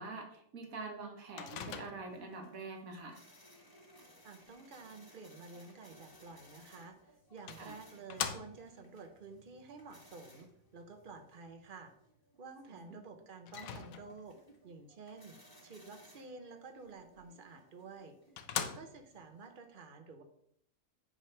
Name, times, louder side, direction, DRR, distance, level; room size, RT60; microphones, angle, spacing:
voice 1, 0.0-3.2 7.6-7.7 12.7-13.0, right 3 dB, 80° right, 3 dB, 1.6 m, -45 dB
Microwave oven, 1.4-2.3 6.6-6.7 7.5-8.8 13.5-14.4 17.5-17.6 18.0-18.1 18.4-19.2, left 8 dB, 80° left, 1.1 m, -41 dB
sound 1, 1.7-19.6, equal, 15° left, 1.5 m, -63 dB
voice 2, 4.2-11.9 12.4-14.4 14.6-15.4 15.6-18.2 18.6-20.2, right 4 dB, 40° right, 6 dB, 1.0 m, -51 dB
8.5 x 3.6 x 5.6 m, 0.68 s
omnidirectional pair, 1.5 m